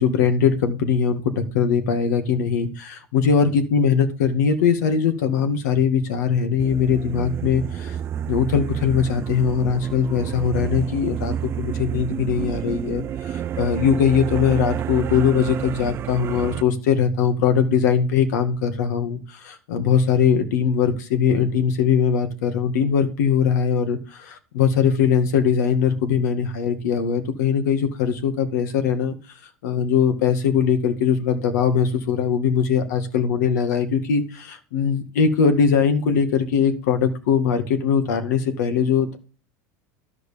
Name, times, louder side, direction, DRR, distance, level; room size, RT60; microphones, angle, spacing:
voice 1, 0.0-8.0 8.3-29.1 29.6-39.2, left 7 dB, 90° left, 8 dB, 2.1 m, -21 dB
sound 1, 6.6-16.6, right 9 dB, 25° right, 0.4 m, -29 dB
13.5 x 4.9 x 6.9 m, 0.37 s
supercardioid pair, 150°, 9 cm